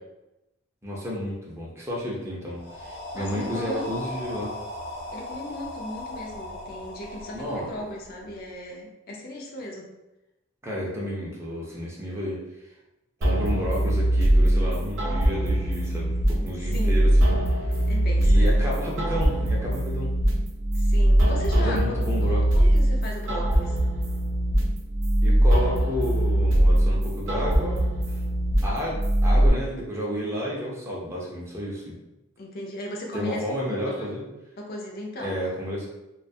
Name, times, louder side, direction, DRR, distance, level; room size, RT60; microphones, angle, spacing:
voice 1, 0.8-4.6 7.3-7.7 10.6-12.4 13.2-17.4 18.2-20.1 21.5-22.7 25.2-28.2 28.6-32.0 33.1-34.2 35.2-35.9, equal, 15° right, -4 dB, 0.5 m, -31 dB
sound 1, 2.5-8.5, left 1 dB, 90° left, 0.7 m, -38 dB
voice 2, 3.1-3.9 5.1-9.8 16.3-17.2 17.9-18.6 20.7-21.8 22.2-23.8 25.5-25.6 32.4-34.1 34.6-35.4, left 1 dB, 50° left, 0 dB, 0.4 m, -37 dB
sound 2, 13.2-29.5, right 1 dB, 65° right, 0.5 m, -22 dB
2.4 x 2.2 x 2.6 m, 0.98 s
head